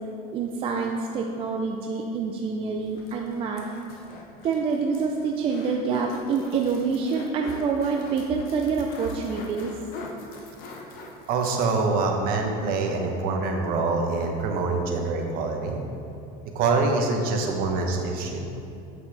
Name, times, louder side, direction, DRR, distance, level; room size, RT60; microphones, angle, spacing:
voice 1, 0.3-3.6 4.4-9.8, right 5 dB, 30° right, 1 dB, 0.4 m, -27 dB
sound 1, 2.8-12.1 12.4-12.5 12.8-12.9, left 3 dB, 50° left, 1.0 m, -44 dB
voice 2, 11.3-15.8 16.5-18.4, right 3 dB, 50° right, 2 dB, 1.0 m, -25 dB
8.0 x 6.4 x 3.4 m, 2.7 s
cardioid pair, 150°, 19 cm